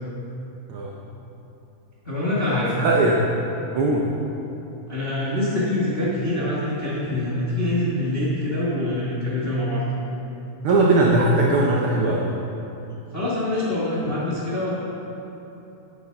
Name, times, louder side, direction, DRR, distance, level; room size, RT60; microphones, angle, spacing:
voice 1, 2.0-2.7 4.9-9.8 13.1-14.7, left 1 dB, 55° left, -7 dB, 0.6 m, -25 dB
voice 2, 2.8-3.2 3.7-4.1 10.6-12.3, right 2 dB, 90° right, -1 dB, 1.2 m, -19 dB
8.9 x 6.8 x 5.8 m, 3.0 s
omnidirectional pair, 3.4 m